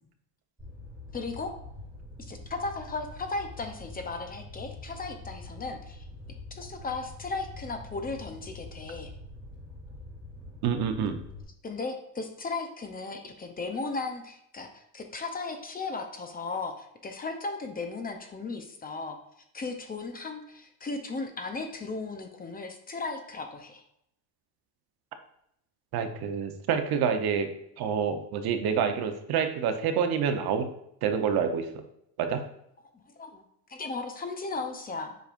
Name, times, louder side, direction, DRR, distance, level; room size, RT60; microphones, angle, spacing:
Fire, 0.6-11.4, left 2 dB, 10° right, 1.9 m, -45 dB
voice 1, 1.1-1.5 2.2-6.1 6.6-9.1 11.6-19.2 19.5-23.8 32.9-35.2, left 3 dB, 20° left, 5 dB, 0.6 m, -36 dB
voice 2, 10.6-11.2 25.9-27.5 27.8-30.7 31.0-31.7 32.2-32.4, right 7 dB, 50° right, 6 dB, 0.9 m, -27 dB
7.9 x 5.1 x 2.5 m, 0.76 s
cardioid pair, 135°, 48 cm